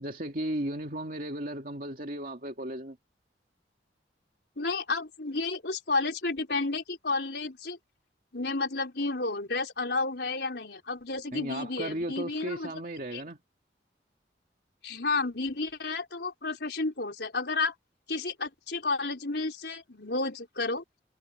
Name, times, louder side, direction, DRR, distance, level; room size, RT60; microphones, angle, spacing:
voice 1, 0.0-3.0 11.3-13.4, right 1 dB, 50° right, 2.6 m, -35 dB
voice 2, 4.6-7.8 8.3-12.7 13.1-13.2 14.8-17.8 18.1-20.8, left 3 dB, 75° left, 4.0 m, -31 dB
head